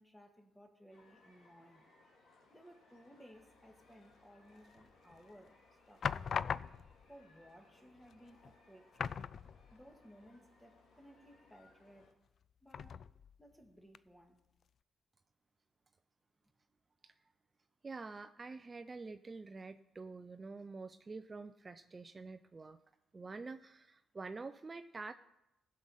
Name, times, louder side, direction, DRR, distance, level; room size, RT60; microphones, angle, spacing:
voice 1, 0.0-1.9 2.5-5.6 5.9-6.6 7.1-9.2 9.7-12.1 12.6-13.0 13.4-14.4, equal, 5° left, 4 dB, 1.8 m, -60 dB
sound 1, 0.9-12.1, left 2 dB, 70° left, 2.8 m, -67 dB
sound 2, 4.8-5.2 6.0-7.1 8.0-8.1 8.4-8.6 9.0-9.9 10.3-10.4 12.7-13.4 13.9-14.0, left 7 dB, 55° left, 0.3 m, -39 dB
voice 2, 17.8-22.8 23.1-25.1, right 3 dB, 30° right, 10 dB, 0.4 m, -47 dB
16.0 x 6.4 x 5.6 m, 0.89 s
cardioid pair, 90°, 0 cm